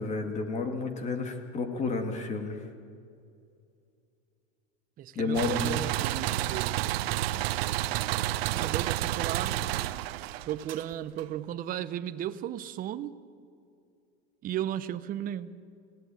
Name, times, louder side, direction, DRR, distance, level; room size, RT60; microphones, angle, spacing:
voice 1, 0.0-2.7 5.2-5.7, left 3 dB, 25° left, 6 dB, 2.1 m, -31 dB
voice 2, 5.0-6.8 8.5-9.6 10.4-13.2 14.4-15.5, right 11 dB, 30° right, 12 dB, 0.9 m, -35 dB
sound 1, 5.3-11.2, right 14 dB, 80° right, 0.9 m, -30 dB
29.5 x 17.5 x 9.2 m, 2.5 s
supercardioid pair, 160°, 30 cm